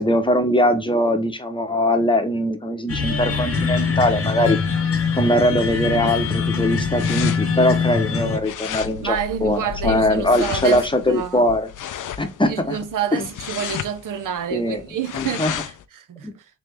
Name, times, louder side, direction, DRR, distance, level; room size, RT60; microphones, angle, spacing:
voice 1, 0.0-4.6 5.1-11.7 12.2-12.8 13.1-13.2 14.5-14.8 15.1-15.6 16.2-16.3, left 1 dB, 15° left, 0.7 m, -21 dB
sound 1, 2.9-8.4, left 5 dB, 45° left, 0.8 m, -23 dB
sound 2, 5.6-15.8, left 9 dB, 75° left, 0.5 m, -33 dB
voice 2, 9.0-11.5 12.5-16.3, right 9 dB, 85° right, 0.6 m, -28 dB
3.6 x 3.2 x 3.4 m
wide cardioid pair, 90°, 31 cm